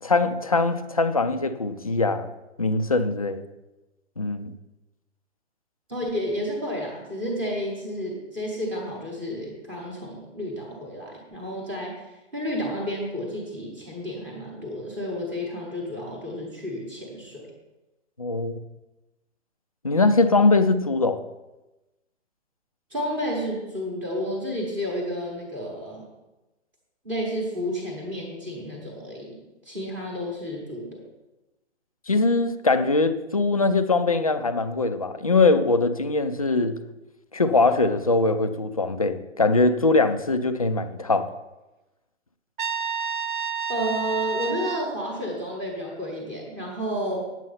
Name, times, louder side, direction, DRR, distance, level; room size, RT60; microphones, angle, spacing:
voice 1, 0.0-2.3 2.6-3.4 4.2-4.5 18.2-18.6 19.8-21.2 32.1-36.8 37.3-41.3, left 3 dB, 35° left, 9 dB, 0.4 m, -22 dB
voice 2, 5.9-11.9 12.3-17.5 22.9-26.0 27.0-29.4 29.6-31.0 43.7-47.2, equal, 5° right, -3 dB, 0.8 m, -31 dB
Trumpet, 42.6-44.9, right 7 dB, 45° right, 0.5 m, -29 dB
9.0 x 7.6 x 5.5 m, 1.0 s
hypercardioid pair, 175°, 35 cm